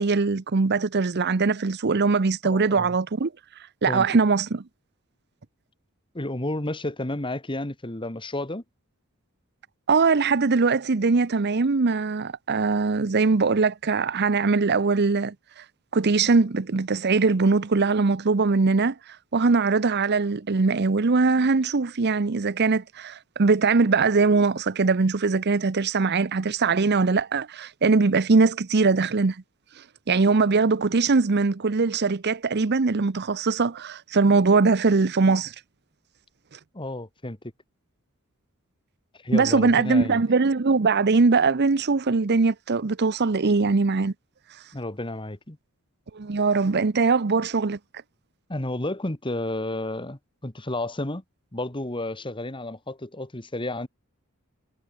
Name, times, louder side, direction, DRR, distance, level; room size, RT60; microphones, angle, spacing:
voice 1, 0.0-3.3 3.8-4.6 9.9-15.6 15.9-19.0 19.3-29.4 30.1-35.5 39.3-44.1 46.1-47.8, right 4 dB, 50° right, 0.7 m, -21 dB
voice 2, 2.4-3.0 3.9-4.1 6.1-8.6 36.7-37.4 39.2-40.2 44.7-45.6 48.5-51.2 51.5-53.9, left 1 dB, 25° left, 1.8 m, -31 dB
head